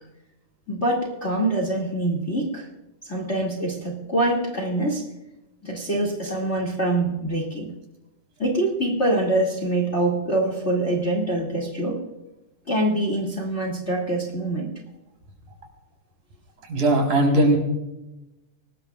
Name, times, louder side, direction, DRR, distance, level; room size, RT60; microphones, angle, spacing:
voice 1, 0.7-2.7 3.1-5.0 5.6-7.7 8.4-12.0 12.7-14.7, right 1 dB, 25° left, 0 dB, 2.2 m, -24 dB
voice 2, 16.7-17.6, right 1 dB, 65° right, 1 dB, 5.4 m, -18 dB
24.5 x 20.0 x 2.4 m, 0.98 s
omnidirectional pair, 3.7 m